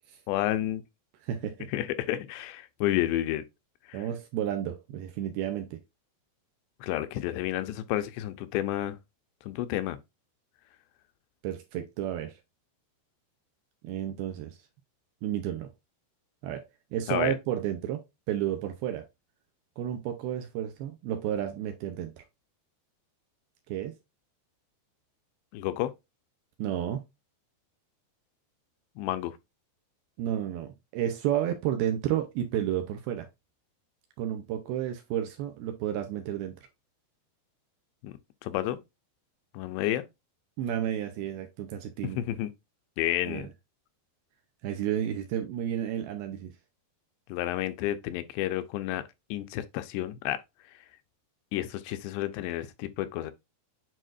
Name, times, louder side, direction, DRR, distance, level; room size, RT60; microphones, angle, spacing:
voice 1, 0.3-0.8 1.7-3.4 3.9-4.1 6.8-9.0 9.5-10.0 17.1-17.4 25.5-25.9 29.0-29.4 38.0-38.1 38.4-38.8 39.5-40.0 42.0-42.5 43.0-43.5 47.3-49.0 49.3-50.4 51.5-53.3, left 14 dB, 90° left, 2.8 m, -30 dB
voice 2, 1.2-1.7 3.9-5.8 11.4-12.3 13.8-14.6 15.2-15.7 16.4-16.6 16.9-18.0 18.3-19.0 19.8-22.1 23.7-23.9 26.6-27.0 30.2-33.3 34.2-36.5 40.6-42.2 43.3-43.5 44.6-46.5, right 11 dB, 75° right, 2.4 m, -31 dB
9.1 x 4.1 x 2.5 m
omnidirectional pair, 4.9 m